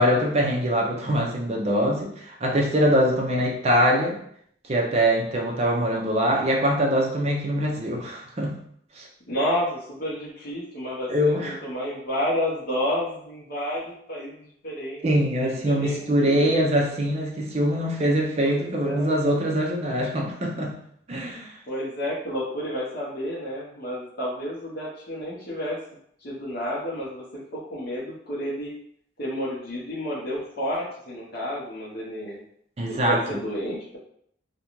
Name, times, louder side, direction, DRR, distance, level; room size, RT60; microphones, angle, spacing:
voice 1, 0.0-4.2 4.7-8.6 9.0-9.1 11.1-11.6 15.0-20.8 21.1-21.5 32.8-33.2, equal, 35° right, -1 dB, 0.5 m, -23 dB
voice 2, 9.3-15.1 15.4-16.5 18.4-19.1 21.7-25.8 26.2-28.7 29.2-32.4 32.9-34.0, equal, 55° left, -7 dB, 0.7 m, -30 dB
2.5 x 2.2 x 2.9 m, 0.67 s
head